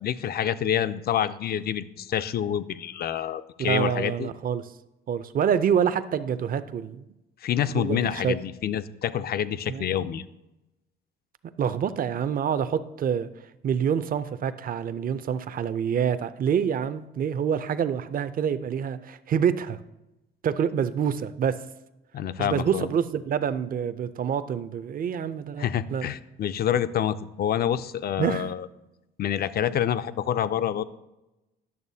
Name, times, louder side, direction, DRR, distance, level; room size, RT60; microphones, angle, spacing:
voice 1, 0.0-4.3 7.4-10.2 22.1-22.9 25.6-28.7 29.2-30.8, left 9 dB, 50° left, 14 dB, 0.4 m, -27 dB
voice 2, 3.6-4.7 5.1-7.0 7.7-8.3 9.7-10.0 11.6-13.3 13.6-19.8 20.4-21.6 22.4-26.1 28.2-28.4, right 8 dB, 45° right, 13 dB, 0.5 m, -26 dB
11.0 x 6.6 x 2.7 m, 0.96 s
cardioid pair, 90°, 20 cm